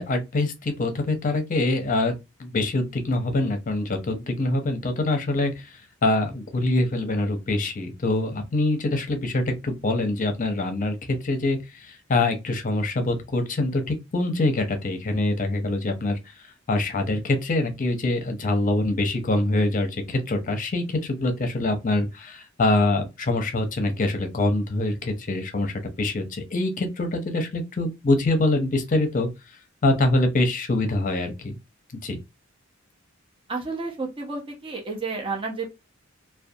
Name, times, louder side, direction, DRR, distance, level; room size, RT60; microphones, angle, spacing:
voice 1, 0.0-2.1 2.4-5.5 6.0-16.2 16.7-29.3 29.8-31.6 32.0-32.2, left 2 dB, 40° left, 0.6 m, -24 dB
voice 2, 33.5-35.7, right 3 dB, 25° right, 0.6 m, -31 dB
2.5 x 2.2 x 2.6 m
head